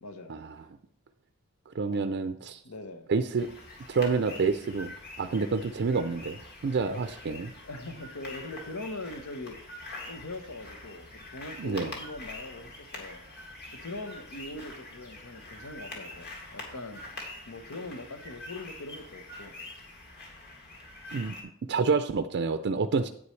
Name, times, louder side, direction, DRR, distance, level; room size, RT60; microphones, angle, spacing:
voice 1, 0.0-0.4 1.9-2.2 2.6-3.1 6.9-9.6 10.0-13.2 13.7-17.1 17.5-19.5, left 2 dB, 90° left, 8 dB, 1.1 m, -42 dB
voice 2, 1.7-2.6 3.1-3.5 3.9-4.9 5.2-7.5 11.6-11.9 21.1-21.3 21.7-23.1, right 4 dB, 55° right, 9 dB, 0.4 m, -28 dB
sound 1, 3.4-21.4, left 2 dB, 50° left, 2.3 m, -45 dB
9.6 x 8.8 x 3.2 m, 0.67 s
head